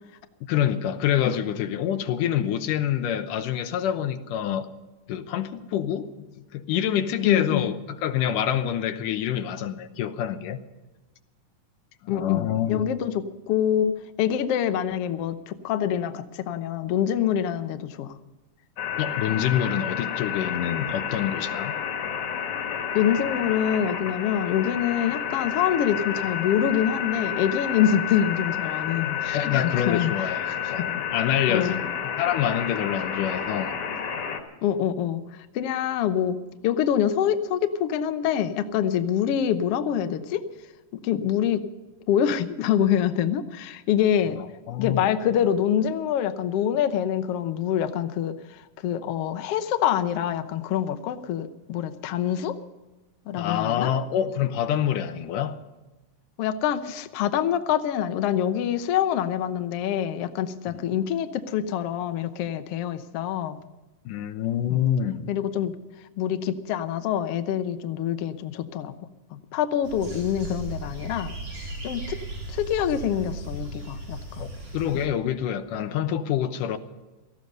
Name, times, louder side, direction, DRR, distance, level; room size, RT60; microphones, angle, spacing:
voice 1, 0.5-4.7 5.1-6.1 6.5-10.6 12.0-12.9 19.0-21.7 29.3-33.8 44.4-45.1 53.4-55.6 64.1-65.3 74.4-74.5 74.7-76.8, left 10 dB, 85° left, 2.5 m, -26 dB
voice 2, 7.2-7.7 12.1-18.2 22.9-30.1 30.5-30.9 31.5-31.8 34.6-36.4 36.6-40.4 40.9-41.6 42.1-44.4 44.8-52.6 53.3-53.9 56.4-63.6 64.7-64.8 65.3-65.7 66.2-68.9 69.3-71.3 71.8-72.2 72.5-74.5 74.9-75.1, left 9 dB, 65° left, 1.5 m, -25 dB
sound 1, 18.8-34.4, left 8 dB, 50° left, 2.2 m, -30 dB
sound 2, 69.8-75.1, right 2 dB, 80° right, 5.9 m, -36 dB
18.5 x 14.0 x 5.3 m
omnidirectional pair, 3.7 m